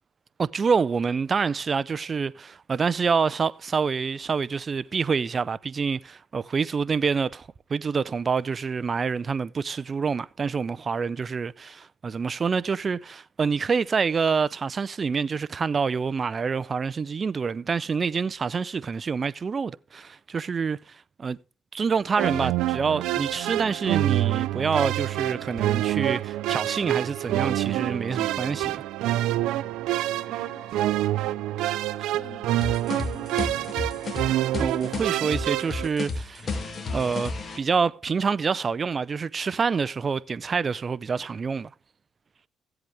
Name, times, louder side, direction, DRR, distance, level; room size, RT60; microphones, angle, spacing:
voice 1, 0.4-21.4 21.7-28.8 34.6-36.5 36.9-41.7, right 5 dB, 35° right, 0.4 m, -27 dB
sound 1, 22.2-35.9, right 15 dB, 90° right, 0.4 m, -27 dB
voice 2, 30.0-34.1, left 6 dB, 60° left, 4.2 m, -49 dB
sound 2, 32.6-37.6, left 3 dB, 35° left, 2.3 m, -32 dB
15.5 x 7.9 x 3.4 m
cardioid pair, 105°, 0 cm